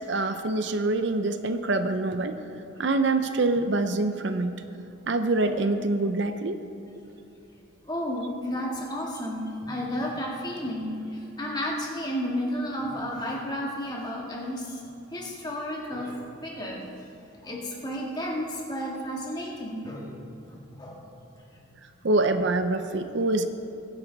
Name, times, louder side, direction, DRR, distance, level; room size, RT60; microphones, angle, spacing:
voice 1, 0.1-2.3 2.8-4.5 5.1-6.6 22.0-23.5, right 2 dB, 60° right, 8 dB, 0.6 m, -25 dB
voice 2, 7.9-14.8 15.1-16.8 17.4-20.1 20.5-21.0, equal, 20° left, -2 dB, 1.9 m, -32 dB
21.5 x 10.5 x 4.0 m, 2.9 s
head